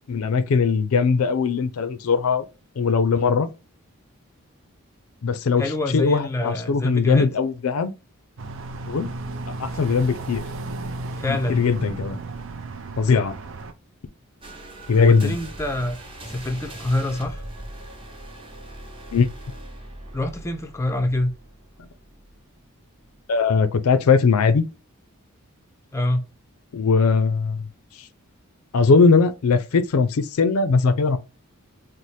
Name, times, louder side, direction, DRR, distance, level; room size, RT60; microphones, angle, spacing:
voice 1, 0.1-2.4 2.8-3.5 5.2-5.6 5.9-7.9 8.9-9.1 9.6-10.5 11.3-12.2 13.0-13.4 14.9-15.4 19.1-19.3 23.3-24.6 26.7-27.7 28.7-31.2, left 4 dB, 75° left, 0.4 m, -20 dB
voice 2, 5.6-7.3 11.2-11.6 15.0-16.0 16.3-17.4 20.1-21.3 25.9-26.2, left 1 dB, 10° left, 0.4 m, -25 dB
sound 1, 8.4-13.7, right 2 dB, 60° right, 0.5 m, -34 dB
sound 2, 14.4-22.6 23.0-23.2, right 1 dB, 25° right, 0.8 m, -40 dB
4.1 x 2.1 x 3.1 m
head